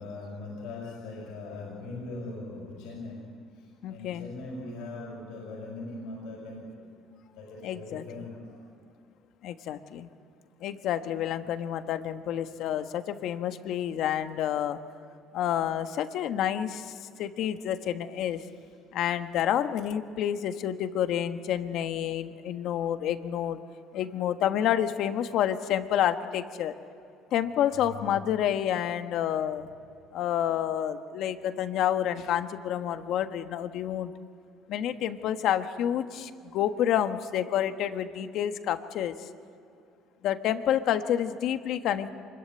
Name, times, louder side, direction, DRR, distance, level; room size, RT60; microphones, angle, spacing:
voice 1, 0.0-6.9 7.3-8.7 18.3-18.7 23.2-23.3 26.7-26.8 27.7-28.6, left 2 dB, 85° left, -1 dB, 6.0 m, -41 dB
voice 2, 3.8-4.3 7.6-8.0 9.4-10.1 10.6-14.8 15.3-18.4 18.9-23.6 23.9-26.7 27.3-29.7 30.1-34.1 34.7-39.1 40.2-42.1, left 10 dB, 70° left, 9 dB, 1.4 m, -29 dB
25.5 x 22.0 x 9.5 m, 2.5 s
cardioid pair, 100°, 0 cm